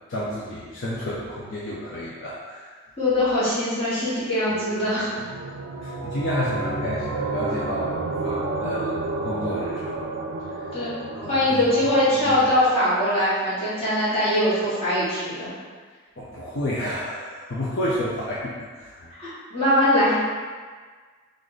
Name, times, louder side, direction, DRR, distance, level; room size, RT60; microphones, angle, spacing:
voice 1, 0.1-2.7 5.8-10.0 10.6-10.8 11.1-11.7 12.2-12.4 16.2-19.1, left 1 dB, 60° left, -7 dB, 0.5 m, -31 dB
voice 2, 3.0-5.1 10.7-10.9 11.3-15.5 19.2-20.1, left 1 dB, 30° left, -12 dB, 1.4 m, -22 dB
sound 1, 4.5-12.8, right 3 dB, 70° right, 0.4 m, -31 dB
3.1 x 2.6 x 3.9 m, 1.5 s
head